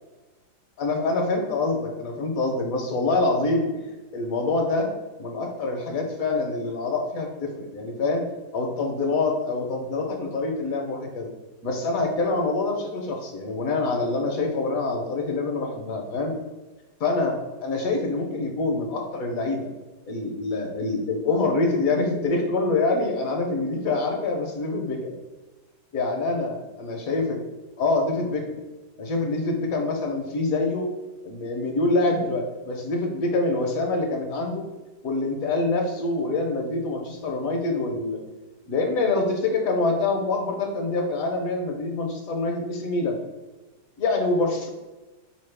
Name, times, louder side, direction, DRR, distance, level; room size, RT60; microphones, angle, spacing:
voice 1, 0.8-3.8 4.1-4.9 5.2-8.2 8.5-11.3 11.6-16.4 17.0-17.4 17.6-19.7 20.1-25.1 25.9-27.4 27.8-28.6 29.0-30.9 31.2-34.7 35.0-38.2 38.7-43.2 44.0-44.7, left 3 dB, 65° left, 2 dB, 0.9 m, -25 dB
4.1 x 3.0 x 3.3 m, 1.2 s
omnidirectional pair, 1.8 m